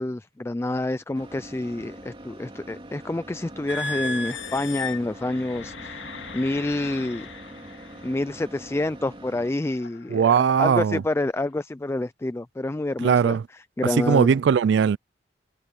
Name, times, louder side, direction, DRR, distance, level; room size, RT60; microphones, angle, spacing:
voice 1, 0.0-7.3 8.0-14.3, left 2 dB, 15° left, 0.3 m, -28 dB
sound 1, 1.1-9.5, right 1 dB, 30° right, 2.3 m, -44 dB
sound 2, 3.7-8.2 8.8-9.1 9.7-10.0, left 3 dB, 90° left, 2.1 m, -36 dB
voice 2, 10.1-11.0 13.0-13.4 14.1-15.0, right 7 dB, 70° right, 0.3 m, -19 dB
head